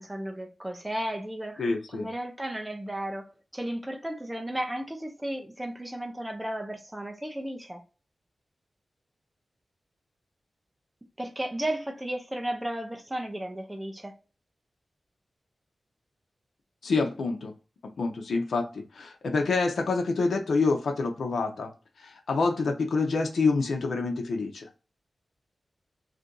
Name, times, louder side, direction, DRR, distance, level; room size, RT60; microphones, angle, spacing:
voice 1, 0.0-7.8 11.2-14.1, right 1 dB, 10° right, 0.5 m, -34 dB
voice 2, 1.6-2.1 16.8-17.5 18.0-21.7 22.0-24.6, left 3 dB, 90° left, 0.6 m, -27 dB
2.7 x 2.5 x 3.7 m
wide cardioid pair, 105°, 0 cm